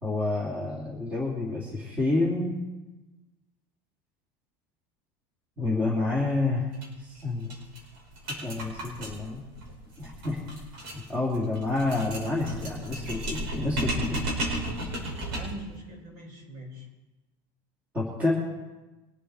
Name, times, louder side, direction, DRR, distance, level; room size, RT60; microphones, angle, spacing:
voice 1, 0.0-2.6 5.6-6.7 7.2-7.5 8.4-9.4 10.0-10.4 10.9-14.2 17.9-18.3, left 2 dB, 15° right, -5 dB, 2.7 m, -28 dB
sound 1, 6.7-6.9 7.2-7.3 7.5-15.7, right 1 dB, 75° right, 5.3 m, -34 dB
voice 2, 15.3-16.8, equal, 55° right, -1 dB, 5.6 m, -42 dB
23.5 x 8.1 x 4.3 m, 1.1 s
cardioid pair, 180°, 12 cm